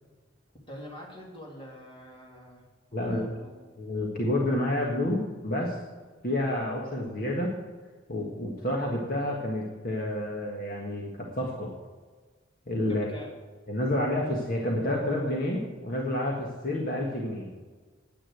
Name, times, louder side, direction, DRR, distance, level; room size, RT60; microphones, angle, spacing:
voice 1, 0.7-2.6 2.9-3.5 12.9-13.3, equal, 25° left, -2 dB, 2.9 m, -45 dB
voice 2, 2.9-3.3 3.8-5.8 6.2-7.5 8.1-11.7 12.7-13.1 13.7-17.5, left 1 dB, 50° left, -2 dB, 1.7 m, -29 dB
10.0 x 8.7 x 7.9 m, 1.4 s
head